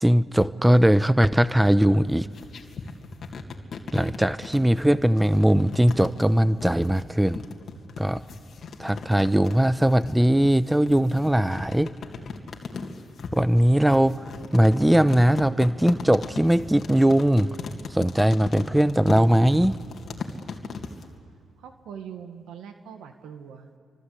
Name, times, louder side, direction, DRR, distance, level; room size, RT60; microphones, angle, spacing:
voice 1, 0.0-2.3 3.9-7.4 8.0-8.2 8.8-11.9 13.3-14.2 14.5-17.6 17.9-19.8, right 1 dB, 10° right, 15 dB, 0.8 m, -20 dB
sound 1, 2.0-21.1, left 4 dB, 60° left, 2.3 m, -38 dB
voice 2, 21.6-23.7, right 8 dB, 80° right, 7 dB, 1.5 m, -42 dB
28.0 x 24.5 x 8.4 m, 2.4 s
supercardioid pair, 55°, 0 cm